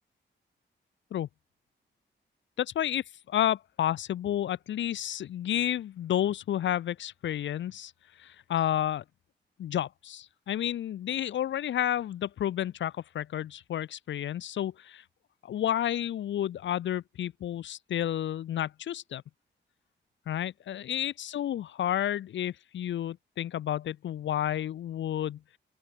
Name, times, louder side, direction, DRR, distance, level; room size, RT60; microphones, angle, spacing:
voice 1, 2.6-7.9 8.2-9.0 9.6-15.0 15.4-19.2 20.3-25.4, left 11 dB, 75° left, 0.5 m, -31 dB
open air
wide cardioid pair, 110°, 19 cm